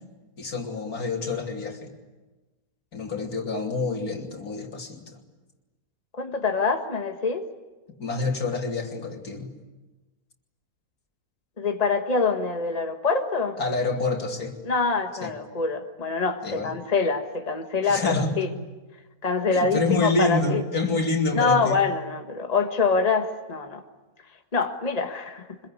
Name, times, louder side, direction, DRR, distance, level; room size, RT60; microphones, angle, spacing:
voice 1, 0.4-1.9 2.9-5.2 8.0-9.5 13.6-14.6 15.2-15.3 16.4-16.7 17.8-18.4 19.5-21.8, left 3 dB, 80° left, 2 dB, 3.4 m, -27 dB
voice 2, 6.1-7.5 11.6-13.6 14.6-18.5 19.2-20.6 21.3-23.8 24.5-25.4, left 4 dB, 25° left, 5 dB, 1.6 m, -25 dB
25.5 x 22.0 x 9.8 m, 1.2 s
omnidirectional pair, 1.5 m